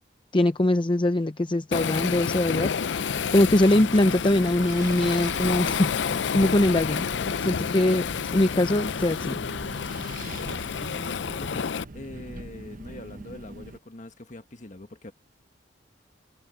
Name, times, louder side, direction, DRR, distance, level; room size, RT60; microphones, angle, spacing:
voice 1, 0.3-3.1 3.3-5.9 6.3-7.1 7.4-8.1 8.3-9.4, left 1 dB, 30° left, 0.7 m, -22 dB
Waves surf, 1.7-11.8, left 6 dB, 85° left, 0.5 m, -29 dB
Wind, 3.1-13.8, right 2 dB, 50° right, 0.9 m, -42 dB
voice 2, 10.8-15.1, left 2 dB, 45° left, 1.5 m, -43 dB
head